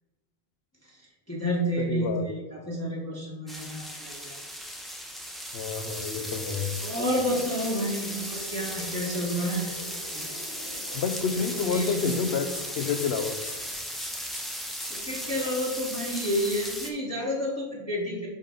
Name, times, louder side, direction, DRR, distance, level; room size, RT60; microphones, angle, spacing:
voice 1, 0.8-4.4 6.8-9.8 10.1-10.3 11.6-11.9 14.5-18.3, equal, 15° left, -4 dB, 1.0 m, -30 dB
voice 2, 1.8-2.3 5.5-6.8 10.9-13.4, left 5 dB, 80° left, 8 dB, 0.9 m, -29 dB
sound 1, 3.5-16.9, equal, ahead, 0.6 m, -36 dB
sound 2, 5.7-13.7, equal, 85° right, 2.2 m, -47 dB
sound 3, 6.0-6.1 6.5-6.6 7.0-7.1 7.4-7.5 7.9-8.0 8.3-8.4 8.8-8.9 9.3-9.4 9.7-9.8 10.2-10.3 10.6-10.7 11.1-14.1 14.3-15.0, left 2 dB, 40° left, 1.2 m, -44 dB
5.5 x 5.3 x 3.8 m, 1.3 s
omnidirectional pair, 1.1 m